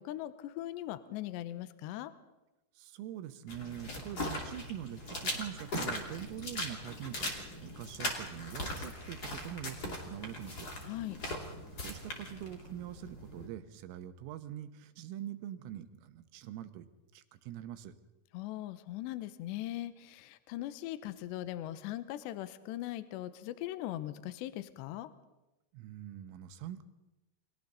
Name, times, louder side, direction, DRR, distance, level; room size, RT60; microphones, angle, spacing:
voice 1, 0.0-2.1 10.9-11.2 18.3-25.1, left 14 dB, 80° left, 12 dB, 2.7 m, -40 dB
voice 2, 2.8-7.3 7.6-10.7 11.8-16.9 17.1-17.9 25.7-26.8, right 11 dB, 90° right, 10 dB, 3.6 m, -44 dB
sound 1, 3.5-13.5, left 1 dB, 30° left, 2.1 m, -40 dB
29.5 x 23.0 x 4.1 m, 0.99 s
omnidirectional pair, 5.9 m